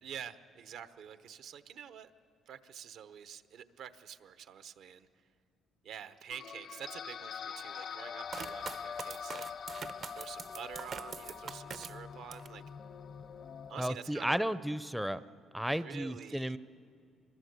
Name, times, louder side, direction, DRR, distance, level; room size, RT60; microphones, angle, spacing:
voice 1, 0.0-2.1 2.5-5.1 5.8-9.4 10.1-12.6 13.7-14.5 15.7-16.6, right 8 dB, 75° right, 12 dB, 0.9 m, -47 dB
sound 1, 6.3-13.9, left 7 dB, 50° left, 0.6 m, -44 dB
sound 2, 8.3-12.6 13.0-13.7, right 6 dB, 45° right, 0.6 m, -45 dB
voice 2, 13.8-15.2 15.5-16.6, equal, 5° right, 14 dB, 0.5 m, -33 dB
24.0 x 22.0 x 8.1 m, 2.4 s
cardioid pair, 105°, 0 cm